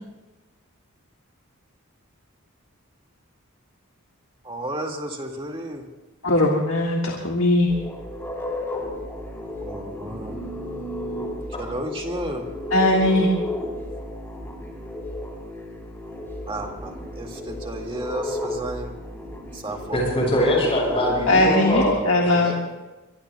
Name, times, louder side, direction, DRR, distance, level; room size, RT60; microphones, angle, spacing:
voice 1, 4.5-5.8 9.6-10.3 11.6-12.4 16.5-16.9 17.2-18.9 19.6-19.8 22.4-22.5, right 1 dB, 25° right, 1 dB, 2.0 m, -32 dB
voice 2, 6.2-7.7 12.7-13.3 21.3-22.5, left 2 dB, 60° left, 0 dB, 1.8 m, -19 dB
sound 1, 7.7-21.9, left 1 dB, 10° left, 3.6 m, -33 dB
voice 3, 19.9-22.2, equal, 30° left, -3 dB, 7.4 m, -22 dB
24.0 x 23.0 x 2.3 m, 1.1 s
head